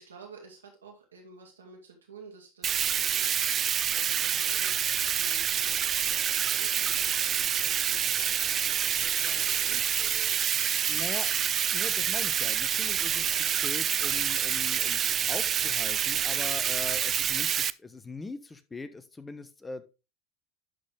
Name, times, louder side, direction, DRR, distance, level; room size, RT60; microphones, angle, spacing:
voice 1, 0.0-3.3 3.8-7.8 8.6-10.4, right 5 dB, 85° right, 1 dB, 2.5 m, -50 dB
Bathtub (filling or washing), 2.6-17.7, right 9 dB, 35° right, 0.3 m, -27 dB
voice 2, 10.9-11.5 11.7-19.8, left 3 dB, 15° left, 12 dB, 0.9 m, -41 dB
11.5 x 4.2 x 3.5 m, 0.28 s
hypercardioid pair, 80°, 0 cm